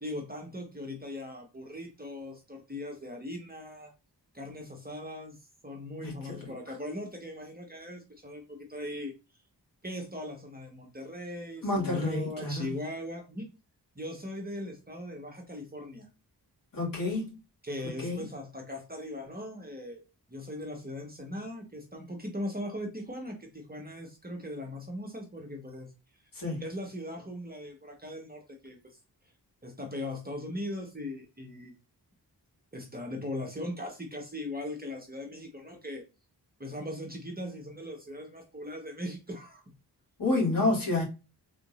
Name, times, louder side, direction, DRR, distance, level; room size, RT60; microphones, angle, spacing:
voice 1, 0.0-3.9 4.3-9.1 9.8-13.5 13.9-16.1 17.6-20.0 20.3-25.9 26.6-28.8 29.6-31.7 32.7-36.0 36.6-39.6, left 1 dB, 20° right, 1.0 m, -39 dB
voice 2, 6.0-6.5 11.6-12.7 16.7-17.4 18.0-18.3 26.3-26.6 40.2-41.0, left 2 dB, 50° left, 2.2 m, -29 dB
3.9 x 3.7 x 2.4 m
wide cardioid pair, 80°, 41 cm